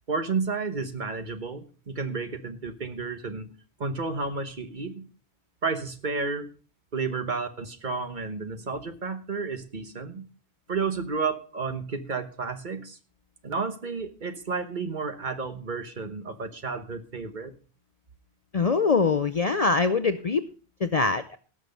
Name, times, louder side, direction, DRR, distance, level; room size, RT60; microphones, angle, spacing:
voice 1, 0.1-3.5 3.8-5.1 5.6-6.5 6.9-10.3 10.7-13.0 13.4-17.5, right 4 dB, 45° right, 9 dB, 1.3 m, -31 dB
voice 2, 18.5-20.4 20.8-21.4, left 4 dB, 45° left, 11 dB, 0.6 m, -23 dB
17.5 x 6.3 x 5.2 m, 0.38 s
omnidirectional pair, 1.1 m